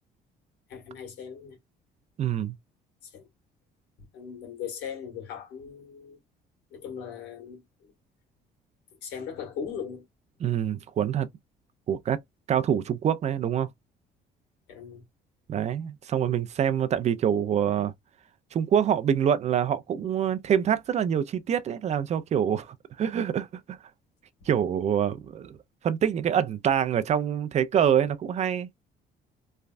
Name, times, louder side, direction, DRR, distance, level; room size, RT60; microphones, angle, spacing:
voice 1, 0.7-1.6 3.0-3.3 4.0-6.2 6.7-7.9 9.0-10.1 14.7-15.0, left 7 dB, 80° left, 1.6 m, -39 dB
voice 2, 2.2-2.6 10.4-11.3 11.9-12.2 12.5-13.7 15.5-17.9 18.5-23.8 24.5-25.6 25.8-28.9, right 9 dB, 40° right, 0.5 m, -25 dB
3.2 x 2.3 x 2.4 m
cardioid pair, 110°, 17 cm